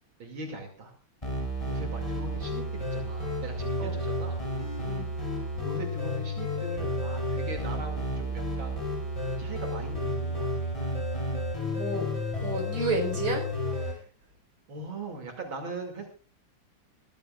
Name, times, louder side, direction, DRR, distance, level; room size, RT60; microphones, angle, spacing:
voice 1, 0.2-0.9 1.7-4.4 5.5-8.8 9.4-10.7 14.7-16.1, right 2 dB, 70° right, 3 dB, 3.2 m, -40 dB
sound 1, 1.2-13.9, left 1 dB, 15° left, 5.8 m, -31 dB
voice 2, 4.7-5.1 11.7-12.1 12.4-13.4 13.8-14.0, right 2 dB, 50° right, 3 dB, 4.9 m, -31 dB
22.5 x 14.0 x 2.4 m, 0.37 s
omnidirectional pair, 2.3 m